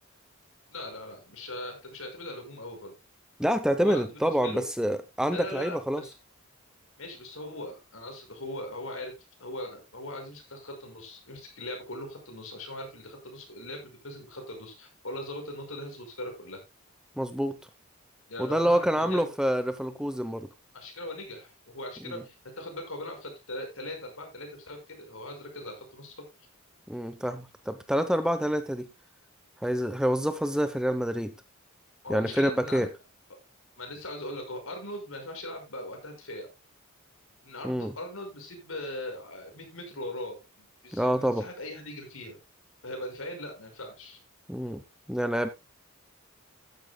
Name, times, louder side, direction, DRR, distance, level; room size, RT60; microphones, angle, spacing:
voice 1, 0.7-2.9 3.8-4.6 5.3-6.1 7.0-9.1 9.4-16.6 18.3-19.2 20.7-26.3 32.0-32.9 33.8-36.5 37.4-42.4 42.8-44.2, left 1 dB, 65° left, 3 dB, 5.7 m, -40 dB
voice 2, 3.4-6.0 17.2-17.6 18.4-20.5 22.1-22.2 26.9-28.9 29.6-31.3 32.1-32.9 37.6-37.9 40.9-41.5 44.5-44.8 45.1-45.5, equal, 5° right, 10 dB, 0.8 m, -27 dB
14.0 x 10.5 x 2.3 m, 0.22 s
head